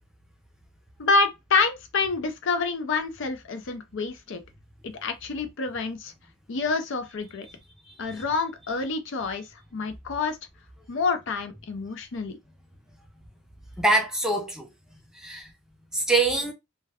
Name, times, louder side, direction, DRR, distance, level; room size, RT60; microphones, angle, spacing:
voice 1, 1.0-4.4 4.8-6.1 6.5-7.5 8.0-9.5 9.7-10.4 10.9-12.4, left 4 dB, 60° left, 0.5 m, -27 dB
voice 2, 13.8-14.7 15.2-15.5 15.9-16.5, right 2 dB, 5° right, 0.5 m, -24 dB
2.2 x 2.2 x 3.4 m
head